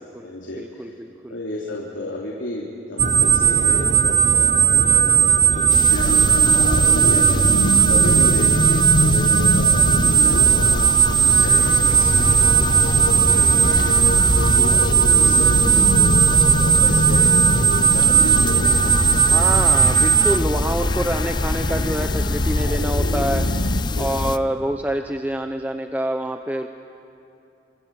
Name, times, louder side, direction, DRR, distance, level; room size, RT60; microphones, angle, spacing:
voice 1, 0.0-0.9 1.3-14.0 14.3-19.6 20.5-20.6 22.7-23.1 23.9-24.3, left 1 dB, 90° left, -3 dB, 3.2 m, -33 dB
voice 2, 0.5-1.4 5.3-5.5 7.7-7.9 11.5-11.8 15.2-15.5 19.2-23.5 24.0-26.7, right 1 dB, 10° right, 5 dB, 0.8 m, -27 dB
sound 1, 3.0-20.4, right 7 dB, 40° right, 0.7 m, -17 dB
sound 2, 5.7-24.4, left 2 dB, 25° left, 0.5 m, -26 dB
sound 3, 5.9-23.8, left 1 dB, 60° left, 1.9 m, -25 dB
26.5 x 25.5 x 7.7 m, 2.8 s
head